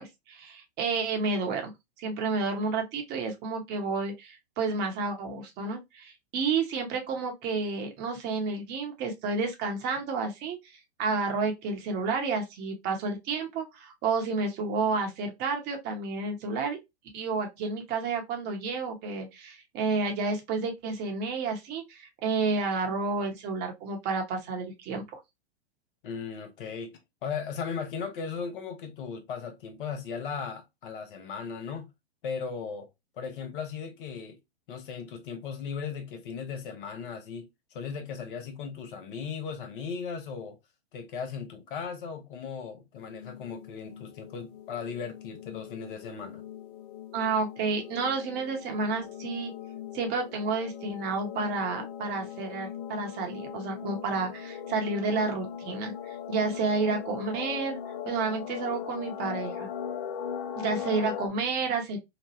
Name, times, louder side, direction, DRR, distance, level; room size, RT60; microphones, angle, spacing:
voice 1, 0.0-1.7 2.0-10.6 11.0-16.8 17.1-25.2 47.1-49.5 49.9-57.8 58.1-59.7 60.6-62.0, right 4 dB, 30° right, 0.9 m, -30 dB
voice 2, 26.0-26.9 27.2-31.9 32.2-32.9 33.2-34.4 34.7-40.6 40.9-46.4, left 6 dB, 55° left, 0.9 m, -37 dB
sound 1, 43.0-61.3, left 8 dB, 40° left, 0.5 m, -40 dB
3.0 x 2.2 x 3.0 m
hypercardioid pair, 115°, 32 cm